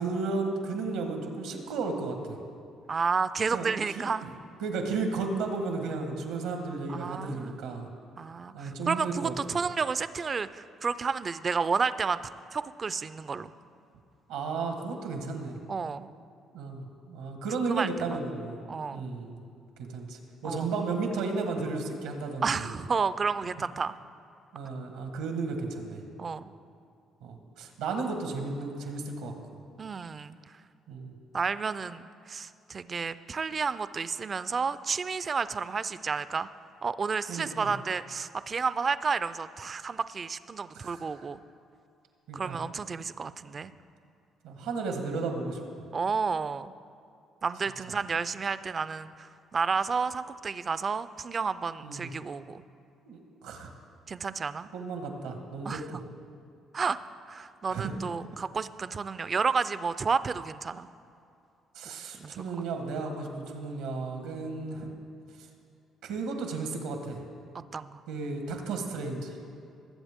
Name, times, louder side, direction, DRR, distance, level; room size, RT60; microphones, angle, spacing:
voice 1, 0.0-2.4 3.5-3.7 3.9-4.0 4.6-7.9 8.5-9.3 14.3-15.6 16.5-18.6 18.9-19.4 19.8-22.7 24.5-26.0 27.2-29.3 30.9-31.1 37.3-37.7 40.7-41.0 42.3-42.6 44.4-45.6 51.8-52.1 53.1-53.7 54.7-55.8 57.7-57.9 61.7-64.9 66.0-67.2 68.1-69.3, right 4 dB, 85° right, 4 dB, 1.4 m, -33 dB
voice 2, 2.9-4.2 6.9-7.6 8.2-12.2 12.5-13.5 15.7-16.1 17.5-17.9 18.7-19.1 20.4-20.7 22.4-23.9 26.2-26.5 29.8-30.4 31.3-36.5 36.8-41.4 42.3-43.7 45.9-46.7 47.4-52.6 54.1-54.7 55.6-56.0 56.7-57.0 57.3-60.9 62.1-62.4 67.7-68.0, right 5 dB, 40° right, 14 dB, 0.4 m, -31 dB
19.5 x 8.0 x 3.6 m, 2.5 s
supercardioid pair, 70°, 0 cm